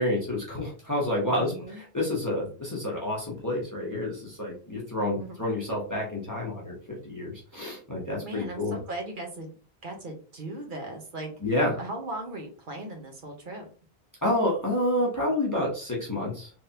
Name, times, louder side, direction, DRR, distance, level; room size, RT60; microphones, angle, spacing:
voice 1, 0.0-6.7 7.0-8.7 11.4-11.7 14.2-16.5, left 1 dB, 20° left, -3 dB, 1.1 m, -29 dB
voice 2, 1.3-1.8 4.2-4.3 5.2-5.4 8.1-9.5 9.8-11.3 11.7-13.7, right 2 dB, 50° right, 2 dB, 1.2 m, -38 dB
3.4 x 3.3 x 2.8 m, 0.39 s
omnidirectional pair, 1.1 m